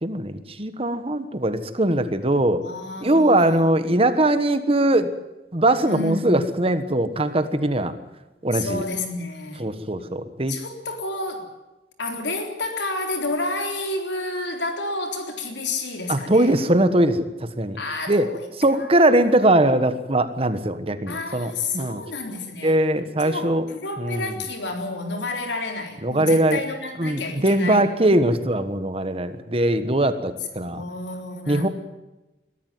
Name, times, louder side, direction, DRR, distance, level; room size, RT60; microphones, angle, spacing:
voice 1, 0.0-2.6 3.0-5.1 5.5-7.9 8.4-8.8 9.6-10.5 16.1-17.8 18.1-18.3 18.6-22.0 22.6-23.6 24.0-24.3 26.0-26.6 27.0-30.8 31.5-31.7, right 1 dB, 30° right, 11 dB, 1.3 m, -21 dB
voice 2, 2.6-4.0 5.8-6.5 8.5-9.7 10.5-11.5 12.0-16.5 17.7-18.5 18.7-18.9 21.1-22.8 23.2-27.8 30.7-31.7, left 2 dB, 80° left, 4 dB, 4.0 m, -30 dB
21.5 x 14.0 x 9.3 m, 1.0 s
head